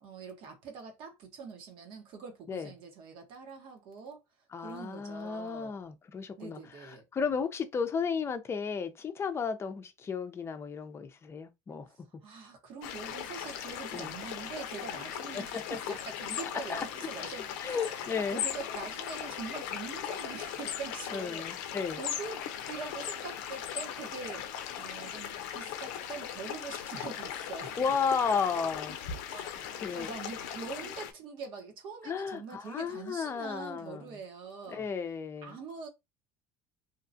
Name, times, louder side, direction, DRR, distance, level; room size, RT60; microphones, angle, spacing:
voice 1, 0.0-4.2 4.6-5.8 6.4-7.1 11.9-21.4 21.9-24.5 24.8-27.9 29.3-34.9 35.4-35.9, right 5 dB, 60° right, 1.1 m, -44 dB
voice 2, 4.5-11.9 13.9-14.1 15.3-15.6 16.7-16.9 17.6-18.4 21.1-22.0 27.8-29.0 29.8-30.1 32.0-34.1 34.7-35.6, left 6 dB, 30° left, 0.6 m, -33 dB
sound 1, 12.8-31.1, left 9 dB, 80° left, 0.5 m, -38 dB
2.8 x 2.3 x 2.6 m
supercardioid pair, 100°, 9 cm